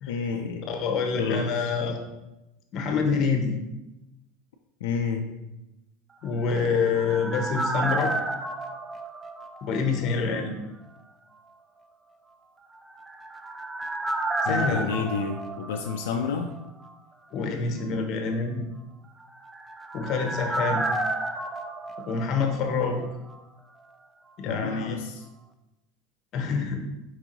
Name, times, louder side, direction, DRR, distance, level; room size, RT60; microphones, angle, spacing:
voice 1, 0.1-0.7 1.1-1.5 4.8-5.3 14.4-16.5 24.5-25.1, left 5 dB, 90° left, 3 dB, 0.4 m, -29 dB
voice 2, 0.7-2.0 2.7-3.5 6.2-8.1 9.6-10.6 14.4-14.9 17.3-18.6 19.9-20.9 22.1-23.0 24.4-25.0 26.3-26.9, left 5 dB, 45° left, 4 dB, 0.8 m, -26 dB
sound 1, 6.3-10.1 10.4-10.5 12.9-16.6 16.8-16.9 19.2-23.1 23.3-23.4, right 2 dB, 10° right, 0.4 m, -31 dB
4.6 x 2.9 x 3.8 m, 0.95 s
supercardioid pair, 130°, 0 cm